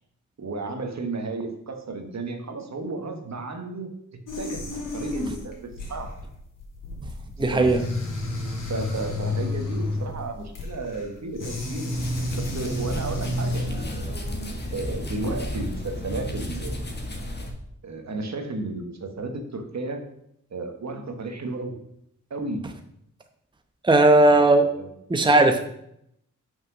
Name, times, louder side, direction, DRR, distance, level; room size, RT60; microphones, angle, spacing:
voice 1, 0.4-6.1 7.5-7.7 8.7-11.9 12.4-14.2 14.7-16.9 17.8-20.0 20.5-21.8 22.3-22.6 24.2-24.9, right 3 dB, 60° right, 5 dB, 1.5 m, -33 dB
sound 1, 4.3-14.4, left 2 dB, 80° left, 2.4 m, -31 dB
voice 2, 7.4-7.8 23.8-24.7 25.1-25.6, right 2 dB, 15° right, 6 dB, 0.8 m, -17 dB
sound 2, 11.9-17.5, left 1 dB, 35° left, 1.6 m, -33 dB
6.0 x 5.4 x 6.1 m, 0.75 s
cardioid pair, 60°, 32 cm